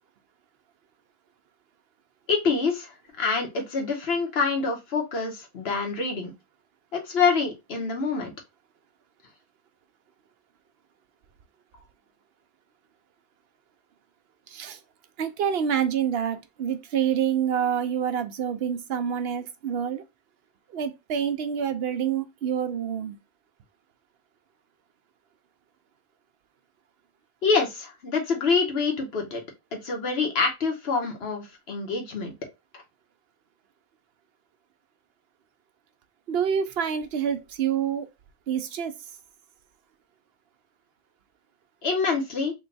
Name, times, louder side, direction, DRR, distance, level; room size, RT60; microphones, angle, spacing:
voice 1, 2.3-2.9 3.2-6.3 6.9-8.3 27.4-29.4 29.7-32.3 41.8-42.5, left 4 dB, 70° left, 1.3 m, -26 dB
voice 2, 14.5-14.8 15.2-20.0 20.7-23.2 36.3-38.1 38.5-38.9, right 8 dB, 70° right, 0.8 m, -27 dB
3.7 x 2.2 x 3.9 m
omnidirectional pair, 1.1 m